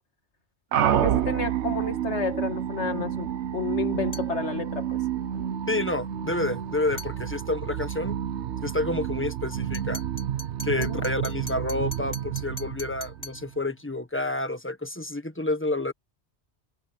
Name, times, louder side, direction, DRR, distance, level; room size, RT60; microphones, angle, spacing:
sound 1, 0.7-13.6, right 10 dB, 80° right, 1.1 m, -29 dB
voice 1, 1.0-5.0 10.8-11.1, left 5 dB, 80° left, 2.1 m, -31 dB
sound 2, 4.1-4.4 7.0-7.2 9.7-13.5, left 1 dB, 35° left, 3.7 m, -42 dB
voice 2, 5.7-8.2 8.6-10.0 10.6-15.9, left 2 dB, 10° left, 1.5 m, -29 dB
omnidirectional pair, 1.2 m